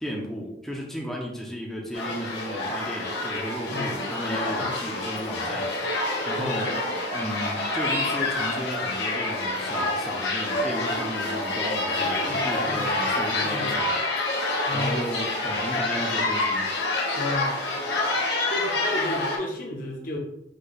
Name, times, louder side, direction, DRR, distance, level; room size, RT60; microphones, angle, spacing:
voice 1, 0.0-5.7 6.2-6.7 7.1-14.0 14.7-16.7, equal, ahead, -2 dB, 0.6 m, -34 dB
sound 1, 1.9-19.4, left 2 dB, 80° left, 1.3 m, -27 dB
voice 2, 11.9-12.9 13.4-13.8 14.7-15.0 17.2-17.6 18.5-20.2, left 1 dB, 50° left, 0 dB, 0.9 m, -32 dB
5.2 x 2.3 x 4.1 m, 0.81 s
head